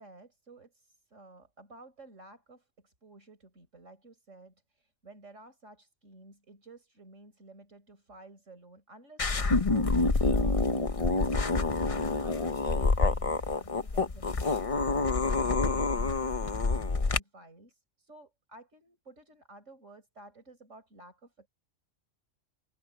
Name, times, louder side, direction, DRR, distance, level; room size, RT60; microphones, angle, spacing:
voice 1, 0.0-15.0 15.6-21.5, right 2 dB, 75° right, 5.3 m, -53 dB
sound 1, 9.2-17.2, left 3 dB, 30° left, 0.9 m, -27 dB
omnidirectional pair, 1.3 m